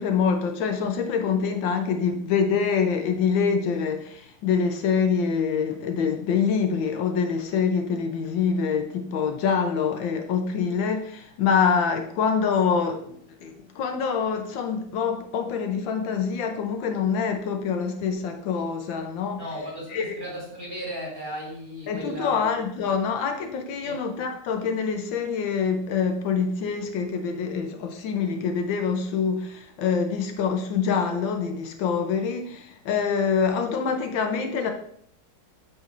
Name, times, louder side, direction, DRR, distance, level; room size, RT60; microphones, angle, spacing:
voice 1, 0.0-19.4 19.9-20.1 21.9-34.7, left 6 dB, 80° left, 1.5 m, -25 dB
voice 2, 19.4-22.6 23.8-24.0, equal, 10° right, 2.7 m, -36 dB
8.3 x 6.9 x 2.5 m
omnidirectional pair, 2.1 m